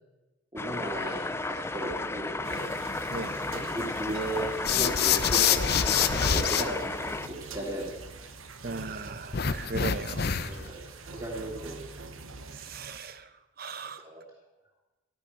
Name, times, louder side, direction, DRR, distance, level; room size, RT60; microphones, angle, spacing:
voice 1, 0.5-2.7 3.5-8.3 10.4-11.8 13.8-14.2, right 1 dB, 25° right, -6 dB, 2.8 m, -37 dB
sound 1, 0.6-7.3, left 2 dB, 10° left, 0.4 m, -33 dB
sound 2, 2.4-13.0, right 3 dB, 90° right, 1.2 m, -44 dB
sound 3, 4.6-6.6 9.3-10.7, left 8 dB, 50° left, 0.7 m, -25 dB
voice 2, 8.6-10.3 12.5-13.3 13.6-14.0, right 3 dB, 45° right, 12 dB, 0.9 m, -37 dB
14.0 x 13.0 x 6.0 m, 1.1 s
head